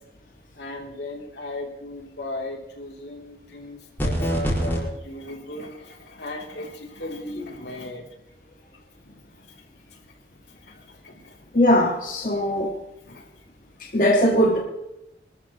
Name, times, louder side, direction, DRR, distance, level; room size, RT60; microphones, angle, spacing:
voice 1, 0.5-8.0 8.7-10.2 10.5-11.6 12.3-12.4 13.0-13.5, left 1 dB, 75° left, 0 dB, 3.1 m, -37 dB
sound 1, 4.0-4.8, equal, 10° left, 4.9 m, -24 dB
voice 2, 11.5-12.8 13.8-14.6, equal, 45° left, -1 dB, 1.7 m, -20 dB
24.5 x 13.5 x 3.1 m, 0.88 s
head